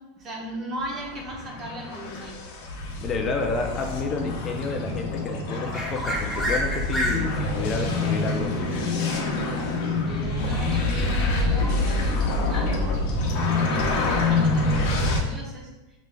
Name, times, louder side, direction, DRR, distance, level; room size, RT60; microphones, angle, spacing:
voice 1, 0.0-2.4 10.0-13.0 13.3-16.0, right 1 dB, 30° right, -1 dB, 0.9 m, -37 dB
sound 1, 0.8-15.2, left 2 dB, 55° left, 0.8 m, -26 dB
voice 2, 3.0-8.7, left 4 dB, 25° left, 3 dB, 0.4 m, -30 dB
sound 2, 5.7-14.0, equal, ahead, 0.9 m, -34 dB
5.2 x 3.2 x 2.2 m, 1.0 s
supercardioid pair, 145°, 0 cm